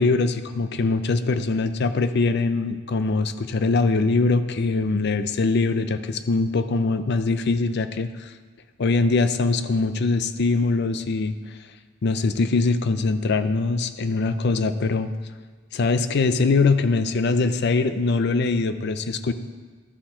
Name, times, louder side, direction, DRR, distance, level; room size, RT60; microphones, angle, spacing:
voice 1, 0.0-8.3 8.8-11.3 12.0-15.1 15.7-19.3, left 3 dB, 55° left, 11 dB, 0.5 m, -22 dB
12.0 x 7.1 x 4.3 m, 1.4 s
head